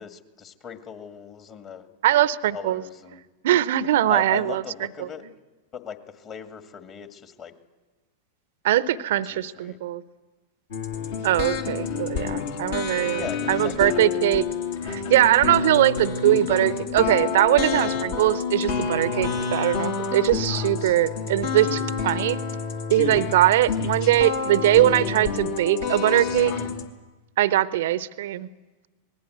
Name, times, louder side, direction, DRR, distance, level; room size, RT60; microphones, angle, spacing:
voice 1, 0.0-1.9 2.5-3.2 4.1-5.2 5.7-7.5 9.3-9.8 13.0-14.1, left 7 dB, 30° left, 7 dB, 2.2 m, -38 dB
voice 2, 2.0-2.8 3.4-4.6 5.0-5.1 8.6-10.0 11.2-14.4 14.8-22.4 22.9-26.5 27.4-28.5, right 13 dB, 55° right, 16 dB, 0.8 m, -21 dB
sound 1, 10.7-26.9, left 5 dB, 55° left, 2.4 m, -28 dB
25.5 x 20.0 x 8.1 m, 1.2 s
figure-of-eight pair, 90°, 0 cm